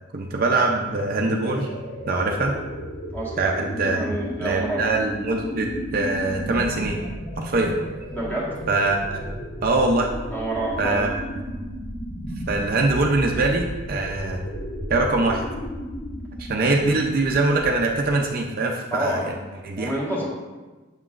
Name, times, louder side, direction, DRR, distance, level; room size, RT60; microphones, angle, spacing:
voice 1, 0.1-1.7 2.1-2.5 3.4-4.1 4.4-7.0 7.4-7.8 8.7-9.2 9.6-10.1 10.8-11.1 12.5-14.4 14.9-15.4 16.4-19.3 19.6-19.9, right 2 dB, 45° right, 1 dB, 0.5 m, -23 dB
sound 1, 0.8-18.3, equal, 70° left, 1.2 m, -34 dB
voice 2, 3.9-4.8 8.1-8.7 10.3-11.1 18.9-19.4 19.8-20.3, right 1 dB, 10° left, -5 dB, 1.3 m, -28 dB
7.2 x 5.8 x 2.4 m, 1.2 s
head